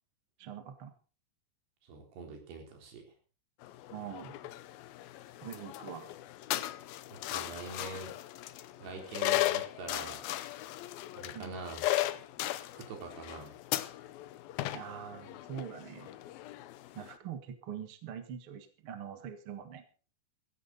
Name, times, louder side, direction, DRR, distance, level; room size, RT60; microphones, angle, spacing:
voice 1, 0.4-0.9 3.9-4.4 5.4-6.1 11.3-11.5 14.7-16.2 16.9-19.8, right 8 dB, 55° right, 8 dB, 1.5 m, -43 dB
voice 2, 1.8-3.1 7.1-8.1 8.8-10.3 11.2-11.8 12.6-13.6, right 4 dB, 70° right, 2 dB, 5.7 m, -44 dB
sound 1, 3.6-17.2, left 15 dB, 75° left, 2.3 m, -37 dB
15.5 x 15.0 x 4.1 m, 0.36 s
omnidirectional pair, 5.0 m